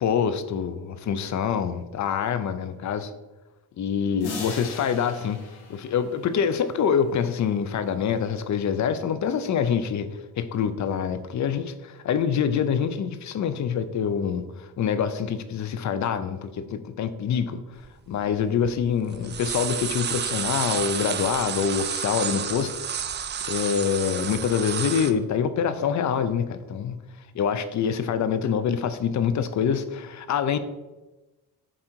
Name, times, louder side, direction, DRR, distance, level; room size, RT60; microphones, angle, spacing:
voice 1, 0.0-3.1 3.8-5.4 5.7-10.1 10.4-17.6 18.1-23.2 23.4-27.0 27.3-30.6, left 7 dB, 50° left, 12 dB, 0.6 m, -25 dB
sound 1, 4.2-6.7, left 3 dB, 85° left, 1.9 m, -39 dB
sound 2, 17.8-17.9 18.2-18.9 19.1-25.1, right 8 dB, 30° right, 0.4 m, -30 dB
7.4 x 3.9 x 4.5 m, 1.1 s
cardioid pair, 120°, 38 cm